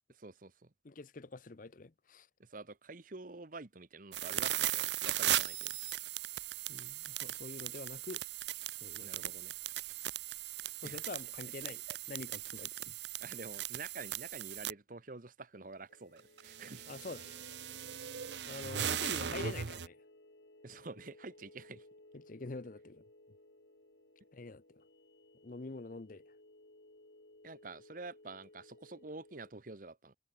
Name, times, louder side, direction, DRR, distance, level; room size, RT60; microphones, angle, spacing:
voice 1, 0.2-0.7 2.4-5.7 9.0-9.5 10.8-11.0 11.7-12.0 13.2-17.0 20.6-21.8 27.4-30.1, right 3 dB, 50° right, 1.1 m, -48 dB
voice 2, 0.8-2.3 6.7-8.2 8.8-9.3 10.8-11.8 12.1-12.9 16.9-17.4 18.4-20.0 22.3-23.0 24.3-24.6 25.4-26.2, left 3 dB, 50° left, 0.7 m, -45 dB
sound 1, 4.1-14.7 16.2-19.9, right 11 dB, 75° right, 0.8 m, -38 dB
sound 2, 15.9-29.5, left 1 dB, 75° left, 3.2 m, -61 dB
head